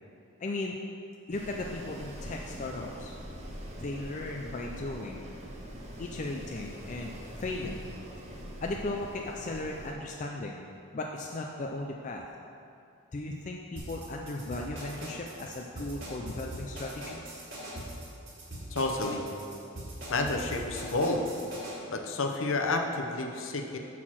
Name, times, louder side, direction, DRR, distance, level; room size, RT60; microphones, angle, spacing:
voice 1, 0.4-0.8 1.3-3.1 3.8-5.2 6.0-7.1 7.4-7.9 8.6-10.6 10.9-12.2 13.1-17.2, left 2 dB, 35° left, 0 dB, 0.4 m, -36 dB
Wind, 1.3-9.9, equal, 30° right, 0.8 m, -43 dB
sound 1, 13.8-21.7, right 1 dB, 50° right, 1.9 m, -41 dB
voice 2, 18.7-19.3 20.1-21.3 21.9-23.8, left 2 dB, 65° left, 3 dB, 0.7 m, -30 dB
6.0 x 5.9 x 6.2 m, 2.6 s
head